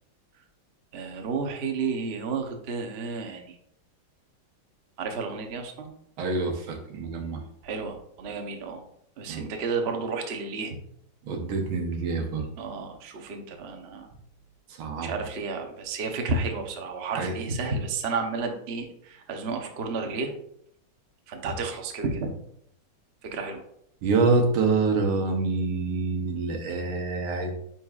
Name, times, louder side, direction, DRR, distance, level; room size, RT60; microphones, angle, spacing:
voice 1, 0.9-3.6 5.0-5.9 7.6-8.8 9.2-10.8 12.6-14.1 15.0-20.3 21.3-22.3 23.2-23.6, right 4 dB, 55° right, 3 dB, 0.7 m, -31 dB
voice 2, 6.2-7.4 9.3-9.4 11.3-12.4 14.8-15.1 17.2-17.3 24.0-27.5, right 3 dB, 80° right, 4 dB, 1.9 m, -26 dB
9.3 x 4.5 x 2.4 m, 0.71 s
omnidirectional pair, 2.2 m